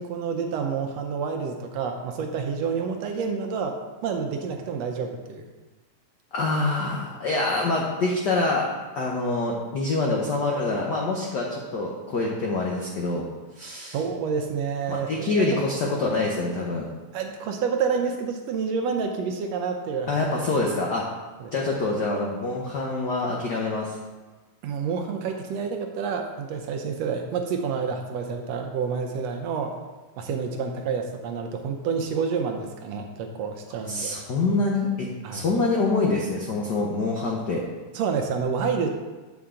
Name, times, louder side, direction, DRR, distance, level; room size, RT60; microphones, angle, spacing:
voice 1, 0.0-5.4 13.9-15.5 17.1-20.3 21.4-21.5 24.6-29.7 30.2-34.2 35.2-35.5 37.9-38.9, right 5 dB, 75° right, 4 dB, 1.7 m, -28 dB
voice 2, 6.3-8.7 8.9-13.3 13.5-14.0 14.9-16.9 20.1-21.0 21.5-23.9 33.9-35.1 35.3-37.6, left 3 dB, 90° left, -2 dB, 0.9 m, -25 dB
8.3 x 7.1 x 3.7 m, 1.2 s
omnidirectional pair, 3.3 m